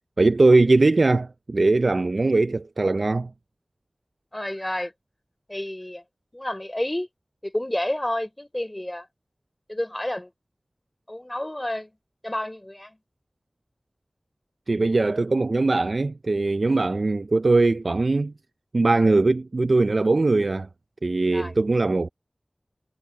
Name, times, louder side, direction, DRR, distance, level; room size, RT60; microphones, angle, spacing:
voice 1, 0.2-3.3 14.7-18.3 18.7-20.7 21.0-22.1, right 3 dB, 70° right, 0.4 m, -20 dB
voice 2, 4.3-4.9 5.5-6.0 6.3-7.1 7.4-9.1 9.7-10.3 11.1-11.9 12.2-13.0 16.7-16.8 21.3-21.5, left 1 dB, 20° left, 4.3 m, -30 dB
wide cardioid pair, 60°, 0 cm